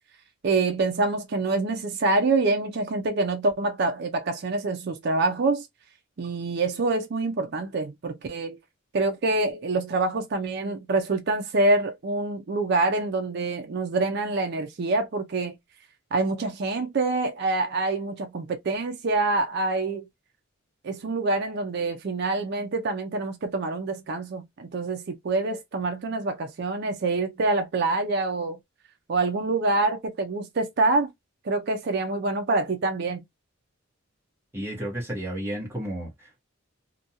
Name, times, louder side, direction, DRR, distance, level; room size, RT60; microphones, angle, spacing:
voice 1, 0.4-5.7 6.2-8.6 8.9-15.6 16.1-20.1 20.8-28.6 29.1-31.1 31.4-33.2, right 3 dB, 50° right, 0.4 m, -26 dB
voice 2, 34.5-36.4, right 1 dB, 10° right, 1.0 m, -32 dB
2.5 x 2.2 x 2.7 m
head